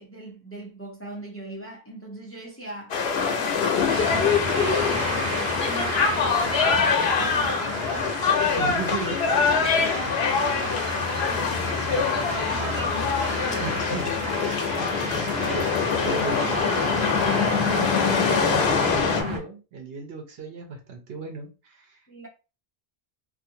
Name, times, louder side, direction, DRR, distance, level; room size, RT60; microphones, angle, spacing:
voice 1, 0.0-3.0 3.2-8.8 9.4-9.9 10.3-13.6 22.1-22.3, right 2 dB, 15° left, 0.6 m, -40 dB
sound 1, 2.9-19.2, left 5 dB, 90° left, 0.9 m, -24 dB
sound 2, 3.9-19.4, left 1 dB, 30° right, 1.3 m, -30 dB
voice 2, 8.6-9.2 9.8-10.2 13.6-14.1 14.8-15.8 16.0-22.0, right 4 dB, 80° right, 1.0 m, -36 dB
2.5 x 2.5 x 2.7 m
omnidirectional pair, 1.0 m